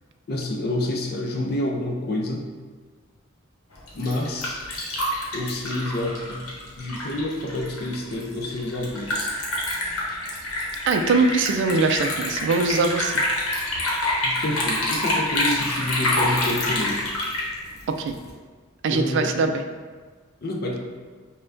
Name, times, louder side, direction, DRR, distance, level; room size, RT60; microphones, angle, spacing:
voice 1, 0.3-2.5 3.9-4.6 5.3-6.5 6.8-9.3 14.2-17.0 18.9-19.3 20.4-20.8, left 1 dB, 50° left, 0 dB, 0.5 m, -28 dB
Liquid, 3.7-18.3, left 1 dB, 80° left, 0.9 m, -27 dB
voice 2, 10.9-13.2 17.9-18.2 18.8-19.6, right 3 dB, 60° right, 7 dB, 0.3 m, -22 dB
5.4 x 2.2 x 2.6 m, 1.5 s
head